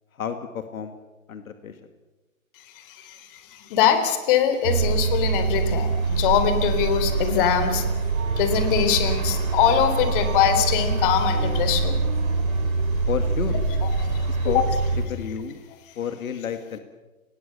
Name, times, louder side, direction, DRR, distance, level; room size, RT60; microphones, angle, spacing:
voice 1, 0.2-0.9 1.3-1.8 13.1-13.6 14.3-14.6 15.1-15.6 16.0-16.8, left 8 dB, 75° left, 8 dB, 2.3 m, -30 dB
voice 2, 2.9-7.8 8.3-12.0 13.8-13.9 14.4-14.6, left 9 dB, 40° left, 9 dB, 4.1 m, -23 dB
sound 1, 4.6-15.1, right 4 dB, 70° right, 7.8 m, -24 dB
30.0 x 21.0 x 7.0 m, 1.1 s
hypercardioid pair, 150°, 42 cm